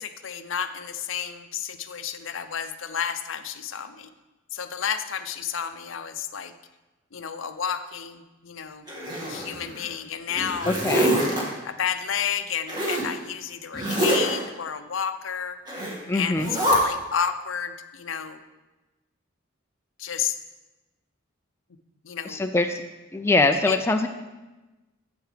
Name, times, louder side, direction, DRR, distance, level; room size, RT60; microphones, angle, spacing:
voice 1, 0.0-4.1 4.5-6.5 7.1-8.9 9.2-11.1 11.6-15.6 16.1-18.4 20.0-20.4 22.0-22.4 23.7-23.8, left 8 dB, 75° left, 10 dB, 0.6 m, -31 dB
Zipper (clothing), 8.9-9.9 10.3-11.4 12.7-13.1 13.7-14.4 15.7-16.0 16.4-16.8, equal, 20° right, 2.0 m, -25 dB
voice 2, 10.7-11.2 16.1-16.5 22.3-22.8 23.1-24.1, left 2 dB, 10° left, 5 dB, 0.4 m, -23 dB
13.5 x 8.0 x 3.3 m, 1.1 s
head